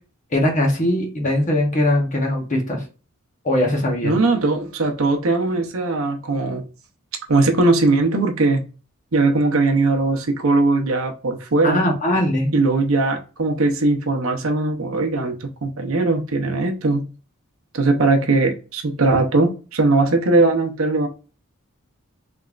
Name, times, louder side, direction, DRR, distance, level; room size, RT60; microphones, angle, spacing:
voice 1, 0.3-2.8 3.4-4.1 11.6-12.5, left 1 dB, 40° left, 1.0 m, -20 dB
voice 2, 4.0-6.6 7.3-8.7 9.1-11.8 12.5-17.1 17.7-21.1, right 3 dB, 75° right, 0.7 m, -19 dB
3.4 x 3.0 x 2.4 m
head